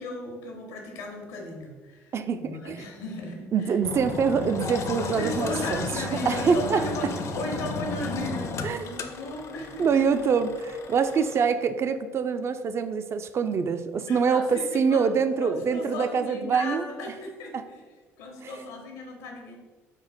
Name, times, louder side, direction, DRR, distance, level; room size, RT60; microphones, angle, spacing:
voice 1, 0.0-3.8 5.1-10.1 14.1-15.1 15.4-17.8 18.2-19.6, left 2 dB, 80° left, 1 dB, 0.8 m, -36 dB
voice 2, 2.1-2.8 3.5-6.8 8.6-8.8 9.8-16.8 17.5-17.6 18.4-18.5, right 6 dB, 40° right, 10 dB, 0.3 m, -25 dB
Engine, 3.8-11.4, left 3 dB, 45° left, 0.4 m, -34 dB
4.3 x 2.1 x 4.1 m, 1.4 s
hypercardioid pair, 65°, 7 cm